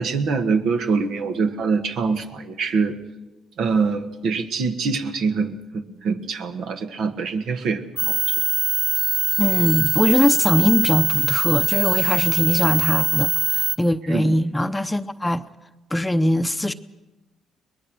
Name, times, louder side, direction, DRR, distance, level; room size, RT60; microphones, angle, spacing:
voice 1, 0.0-3.0 3.6-8.3 14.1-14.4, right 4 dB, 75° right, 1.6 m, -24 dB
sound 1, 8.0-13.8, right 4 dB, 30° right, 0.6 m, -22 dB
voice 2, 9.4-15.4 15.9-16.7, left 1 dB, 10° left, 0.7 m, -21 dB
23.0 x 20.0 x 6.2 m
cardioid pair, 90°, 0 cm